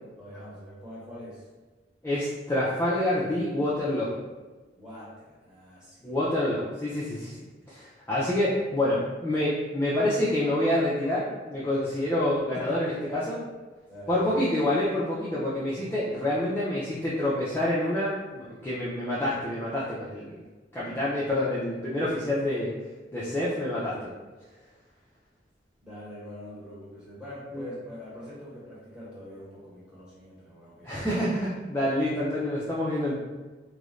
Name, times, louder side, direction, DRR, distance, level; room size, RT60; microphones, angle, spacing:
voice 1, 0.2-1.5 4.7-6.2 12.5-13.1 13.9-14.3 25.8-31.0, equal, 5° right, -9 dB, 1.1 m, -44 dB
voice 2, 2.0-4.1 6.0-7.4 7.7-13.4 14.1-20.3 20.7-22.7 23.1-24.1 27.5-27.6 30.8-33.1, left 1 dB, 15° left, -8 dB, 0.3 m, -27 dB
2.4 x 2.0 x 3.0 m, 1.3 s
head